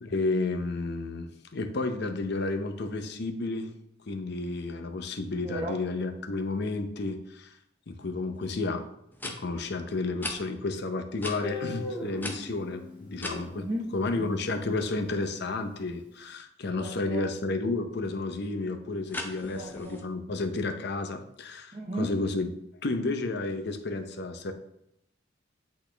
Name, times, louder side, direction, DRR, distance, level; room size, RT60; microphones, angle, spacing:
voice 1, 0.0-3.7 4.1-7.6 7.9-8.9 9.2-24.5, left 3 dB, 60° left, 7 dB, 0.7 m, -32 dB
sound 1, 8.3-8.4 9.1-9.3 10.2-10.4 11.2-11.4 12.2-13.4 19.1-20.0, left 2 dB, 10° left, 0.6 m, -37 dB
Guitar, 11.4-14.4, left 2 dB, 10° right, 1.7 m, -40 dB
voice 2, 13.6-13.9 14.2-14.3 16.8-17.2 19.5-20.0 21.7-22.1, right 1 dB, 30° right, -4 dB, 0.7 m, -34 dB
8.3 x 4.1 x 3.3 m, 0.79 s
head